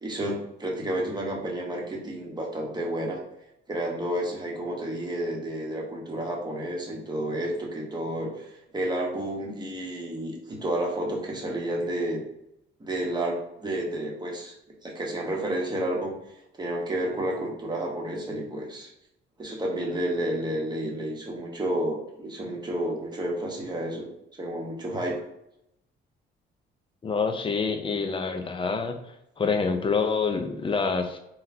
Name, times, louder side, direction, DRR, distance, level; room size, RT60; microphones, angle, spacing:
voice 1, 0.0-3.2 3.7-12.2 12.8-14.5 14.8-16.1 16.6-18.9 19.4-24.1 24.4-25.1, right 1 dB, 20° right, -1 dB, 1.0 m, -30 dB
voice 2, 27.0-29.0 29.4-31.2, left 5 dB, 25° left, 6 dB, 0.5 m, -26 dB
3.7 x 2.2 x 2.7 m, 0.81 s
cardioid pair, 90°, 20 cm